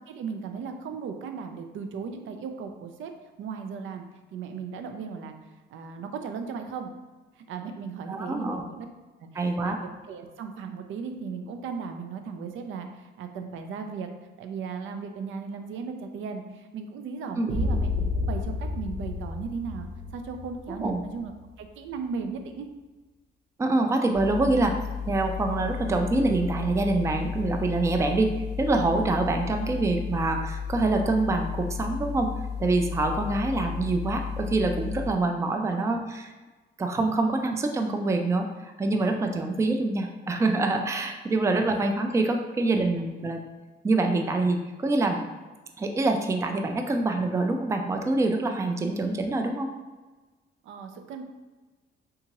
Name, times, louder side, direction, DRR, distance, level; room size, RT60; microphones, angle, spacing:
voice 1, 0.1-3.1 3.4-4.0 4.3-5.3 5.7-6.9 7.4-8.9 9.2-9.8 10.0-14.1 14.4-21.3 21.6-22.7 33.5-33.7 35.7-35.8 39.0-39.1 43.0-43.1 48.8-48.9 50.6-51.2, right 5 dB, 75° right, 6 dB, 0.5 m, -36 dB
voice 2, 8.1-8.7 9.3-9.8 17.4-17.5 20.8-21.0 23.6-24.8 25.1-32.3 32.6-36.3 36.8-43.4 43.8-45.2 45.8-49.7, right 2 dB, 15° right, 5 dB, 0.3 m, -25 dB
sound 1, 17.5-21.5, left 3 dB, 40° right, 0.8 m, -30 dB
sound 2, 24.1-35.1, left 7 dB, 55° left, 0.4 m, -34 dB
3.6 x 2.8 x 2.9 m, 1.2 s
cardioid pair, 90°, 20 cm